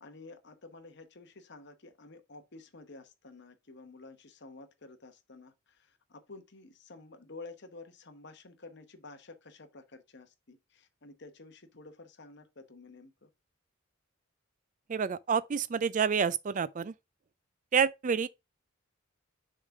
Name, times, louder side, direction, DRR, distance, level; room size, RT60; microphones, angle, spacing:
voice 1, 0.0-13.3 18.1-18.2, left 3 dB, 55° left, 1.1 m, -51 dB
voice 2, 14.9-16.9 17.7-18.3, right 6 dB, 35° right, 0.4 m, -28 dB
6.4 x 3.8 x 4.6 m
head